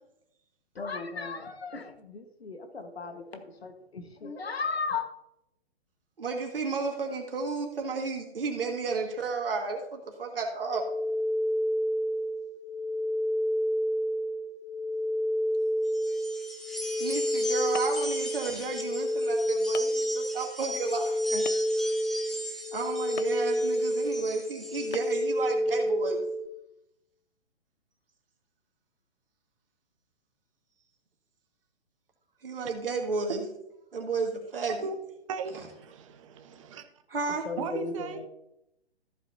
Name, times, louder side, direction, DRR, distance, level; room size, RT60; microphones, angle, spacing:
voice 1, 0.7-5.1 37.4-38.3, left 4 dB, 65° left, 7 dB, 1.5 m, -36 dB
voice 2, 6.2-10.9 17.0-21.4 22.7-26.2 32.4-33.4 33.9-34.9 37.1-37.4, right 4 dB, 60° right, 1 dB, 2.0 m, -32 dB
sound 1, 10.7-26.5, equal, 85° left, 1.0 m, -29 dB
sound 2, 15.9-25.3, equal, ahead, 0.6 m, -39 dB
sound 3, 17.7-18.1 18.9-19.0 19.7-20.0 21.4-21.8 23.2-23.4 24.9-25.3, left 7 dB, 40° left, 0.5 m, -40 dB
voice 3, 35.3-36.9 37.3-38.2, right 5 dB, 30° right, 8 dB, 0.9 m, -37 dB
14.5 x 8.0 x 2.8 m, 0.82 s
figure-of-eight pair, 125°, 33 cm